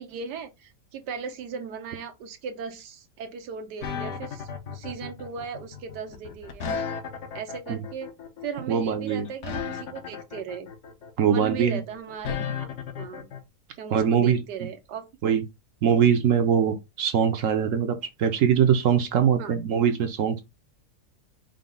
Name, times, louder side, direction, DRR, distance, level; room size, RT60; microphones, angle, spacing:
voice 1, 0.0-6.7 7.3-8.1 8.4-10.7 11.2-12.7 13.0-13.3 13.7-15.1 19.4-19.5, right 6 dB, 90° right, 1.4 m, -37 dB
sound 1, 3.8-13.4, left 6 dB, 55° left, 0.9 m, -34 dB
voice 2, 8.7-9.3 11.2-11.8 13.9-14.4 15.2-15.4 15.8-20.4, right 7 dB, 65° right, 0.9 m, -22 dB
5.1 x 2.1 x 3.7 m
omnidirectional pair, 1.7 m